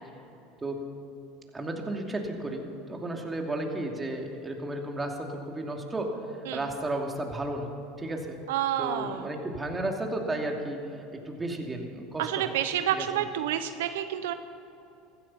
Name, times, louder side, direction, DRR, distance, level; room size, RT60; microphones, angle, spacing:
voice 1, 1.5-6.1 6.5-8.4 8.8-12.5 12.9-13.0, right 1 dB, 15° right, 2 dB, 2.6 m, -33 dB
voice 2, 8.5-9.3 12.2-14.3, right 11 dB, 80° right, 10 dB, 0.7 m, -29 dB
15.5 x 15.0 x 5.8 m, 2.9 s
supercardioid pair, 95°, 0 cm